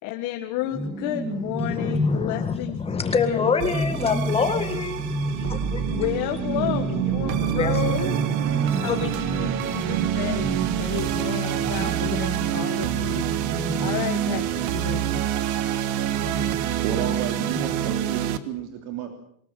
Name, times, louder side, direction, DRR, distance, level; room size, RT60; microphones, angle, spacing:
voice 1, 0.0-3.5 5.9-8.1 8.6-13.2 13.8-14.5 14.7-15.1, left 14 dB, 60° left, 4 dB, 1.8 m, -31 dB
sound 1, 0.6-15.4 16.1-18.0, right 1 dB, 10° right, 1.7 m, -32 dB
voice 2, 1.6-6.1 7.1-9.1, left 5 dB, 15° left, 7 dB, 1.9 m, -27 dB
sound 2, 3.6-18.4, right 11 dB, 60° right, 1.6 m, -26 dB
voice 3, 16.8-19.2, right 9 dB, 80° right, 5 dB, 3.3 m, -31 dB
23.0 x 20.5 x 7.5 m, 0.65 s
cardioid pair, 175°, 35 cm